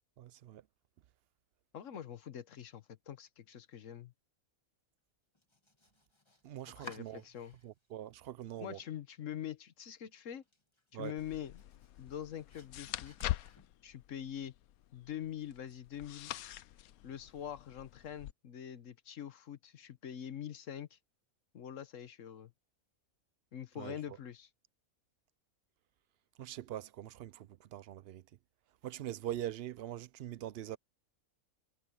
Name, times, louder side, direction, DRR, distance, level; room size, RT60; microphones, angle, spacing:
voice 1, 0.2-0.6 6.4-7.2 7.6-8.8 10.9-11.1 23.8-24.0 26.4-28.2 28.8-30.8, right 12 dB, 65° right, 0.6 m, -43 dB
voice 2, 1.7-4.1 6.7-7.5 8.6-10.4 10.9-11.6 12.0-13.3 13.8-14.5 14.9-16.3 17.0-21.0 21.5-22.5 23.5-24.5, left 10 dB, 60° left, 1.4 m, -44 dB
Domestic sounds home sounds, 5.3-7.9 8.2-9.0 9.3-9.4 9.9-10.0 10.3-14.0, left 1 dB, 20° left, 2.2 m, -57 dB
sound 1, 11.2-18.3, left 14 dB, 80° left, 1.1 m, -44 dB
omnidirectional pair, 1.5 m